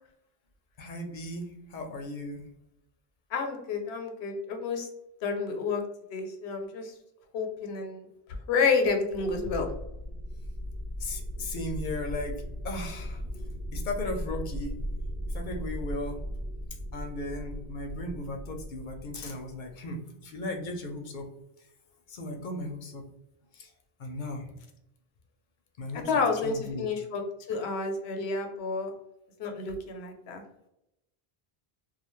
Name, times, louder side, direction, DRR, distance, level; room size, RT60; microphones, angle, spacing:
voice 1, 0.8-2.5 11.0-13.2 13.7-14.8 15.3-16.2 16.9-21.3 22.1-23.0 23.5-23.7 24.0-24.5 25.8-26.9, left 1 dB, 60° left, 3 dB, 0.6 m, -36 dB
voice 2, 3.3-4.9 5.2-5.8 6.1-6.9 7.3-8.1 8.5-9.7 26.1-27.2 27.5-28.9 29.4-30.4, left 4 dB, 85° left, 4 dB, 0.8 m, -29 dB
sound 1, 9.1-19.7, equal, 90° right, 1.0 m, -37 dB
2.4 x 2.4 x 3.0 m, 0.84 s
omnidirectional pair, 1.0 m